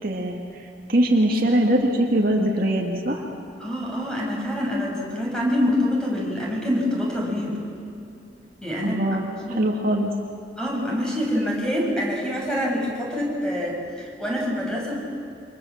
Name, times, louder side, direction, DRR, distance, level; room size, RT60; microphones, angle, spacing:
voice 1, 0.0-3.2 8.8-10.1, right 1 dB, 55° right, 0 dB, 2.6 m, -22 dB
voice 2, 3.6-7.6 8.6-9.0 9.5-9.6 10.6-15.0, left 1 dB, 5° left, -3 dB, 7.3 m, -26 dB
29.0 x 26.5 x 7.5 m, 2.6 s
head